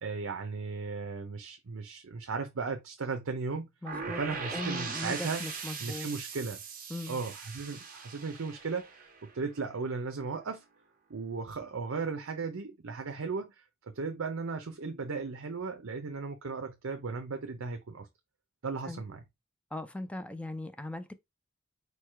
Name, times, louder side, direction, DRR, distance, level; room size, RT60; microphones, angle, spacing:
voice 1, 0.0-3.7 4.1-5.5 5.8-6.6 7.1-10.6 11.1-18.1 18.6-19.2, right 4 dB, 65° right, 0.6 m, -36 dB
voice 2, 3.8-4.2 4.5-6.1 6.9-7.2 18.8-19.0 19.7-21.1, left 2 dB, 5° left, 0.3 m, -39 dB
sound 1, 3.9-9.7, right 5 dB, 40° right, 0.9 m, -40 dB
4.7 x 2.2 x 4.5 m
head